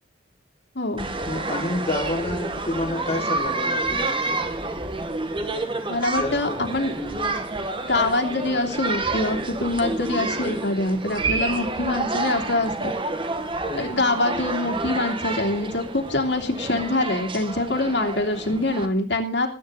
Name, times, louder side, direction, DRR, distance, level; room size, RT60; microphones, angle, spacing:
voice 1, 0.7-1.0 5.9-6.9 7.8-12.9 13.7-19.5, left 2 dB, 65° left, 2 dB, 3.1 m, -24 dB
sound 1, 1.0-18.9, right 2 dB, 25° right, 1.5 m, -29 dB
voice 2, 1.3-4.2 6.2-6.6 7.0-7.3 11.5-11.6 13.7-14.0, left 1 dB, 30° left, 0 dB, 2.1 m, -29 dB
20.5 x 9.6 x 4.0 m, 0.35 s
head